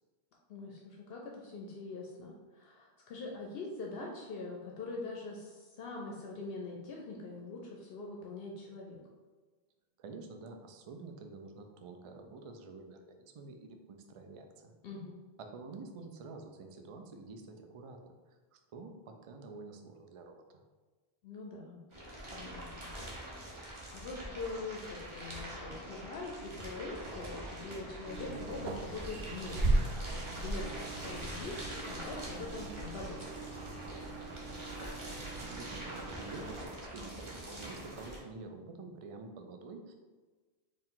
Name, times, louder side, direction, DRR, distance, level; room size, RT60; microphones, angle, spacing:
voice 1, 0.5-9.0 14.8-15.1 21.2-21.8 22.3-22.9 23.5-31.6 31.8-33.2, left 3 dB, 70° left, -1 dB, 0.8 m, -43 dB
voice 2, 10.0-14.7 15.4-18.0 18.3-20.6 35.4-39.9, right 3 dB, 55° right, 5 dB, 0.3 m, -48 dB
sound 1, 21.9-38.2, right 1 dB, 30° right, 0.8 m, -44 dB
sound 2, 28.1-36.7, right 2 dB, 75° right, 0.8 m, -37 dB
4.5 x 2.5 x 3.7 m, 1.3 s
omnidirectional pair, 1.1 m